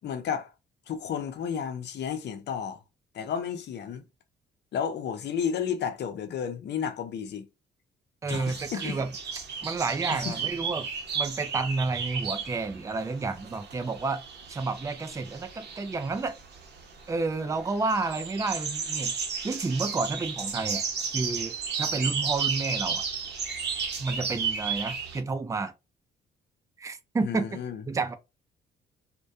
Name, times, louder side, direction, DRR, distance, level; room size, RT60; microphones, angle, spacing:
voice 1, 0.0-0.5 0.9-2.8 3.1-4.0 4.7-7.5 8.3-9.0 9.6-9.7 10.1-10.4 27.2-27.8, left 7 dB, 60° left, 0.6 m, -32 dB
voice 2, 8.2-9.1 9.6-10.9 11.1-14.2 14.5-16.3 17.1-19.1 19.4-20.8 21.1-23.0 24.0-25.7 26.8-27.4 27.9-28.1, right 3 dB, 15° right, 0.4 m, -30 dB
sound 1, 8.3-25.2, right 6 dB, 55° right, 0.8 m, -33 dB
2.2 x 2.2 x 2.6 m
cardioid pair, 90°, 20 cm